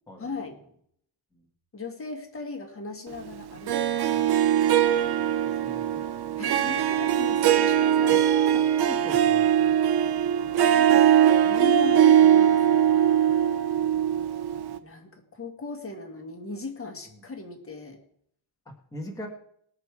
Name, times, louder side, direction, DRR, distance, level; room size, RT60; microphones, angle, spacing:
voice 1, 0.2-0.6 1.7-4.5 6.4-8.5 10.6-13.3 14.8-18.0, left 3 dB, 30° left, 3 dB, 1.9 m, -38 dB
Harp, 3.7-14.8, right 10 dB, 55° right, 0.9 m, -21 dB
voice 2, 5.4-6.0 8.5-9.7 13.8-14.0 18.9-19.3, equal, 5° left, -1 dB, 1.7 m, -41 dB
20.0 x 6.8 x 4.8 m, 0.67 s
cardioid pair, 170°, 46 cm